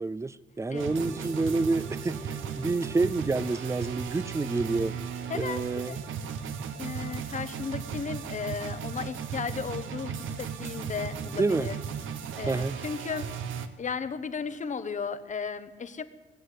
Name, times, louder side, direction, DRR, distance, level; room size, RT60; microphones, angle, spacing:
voice 1, 0.0-5.0 5.3-6.0 11.2-11.7 12.5-12.8, right 3 dB, 15° right, 0.5 m, -28 dB
sound 1, 0.8-13.7, right 7 dB, 80° right, 1.1 m, -36 dB
sound 2, 1.0-8.7, right 1 dB, 5° left, 1.5 m, -49 dB
voice 2, 5.3-6.0 6.8-11.8 12.1-13.3 13.8-16.0, left 5 dB, 40° left, 1.0 m, -35 dB
20.5 x 8.0 x 8.4 m
cardioid pair, 90°, 20 cm